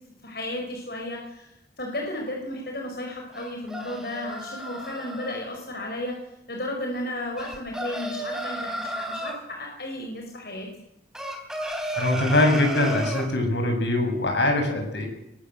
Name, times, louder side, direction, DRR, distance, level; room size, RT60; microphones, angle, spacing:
voice 1, 0.2-1.5 1.8-6.2 6.5-10.7, left 1 dB, 60° left, 1 dB, 5.3 m, -33 dB
sound 1, 3.3-5.3 7.4-9.4 11.1-13.3, right 1 dB, 5° right, 3.8 m, -33 dB
voice 2, 11.9-15.1, left 1 dB, 85° left, 4 dB, 7.3 m, -22 dB
22.5 x 19.5 x 7.9 m, 0.85 s
head